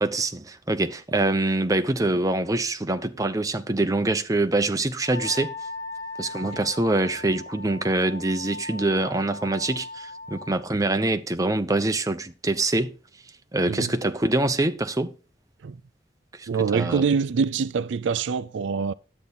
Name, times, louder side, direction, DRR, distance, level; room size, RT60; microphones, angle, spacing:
voice 1, 0.0-5.5 6.2-12.9 13.5-15.1 16.4-17.0, right 2 dB, 20° right, 0.8 m, -25 dB
Wind instrument woodwind instrument, 5.0-10.6, left 2 dB, 70° left, 6.2 m, -38 dB
voice 2, 16.5-18.9, right 5 dB, 85° right, 0.4 m, -25 dB
11.0 x 8.3 x 4.1 m
head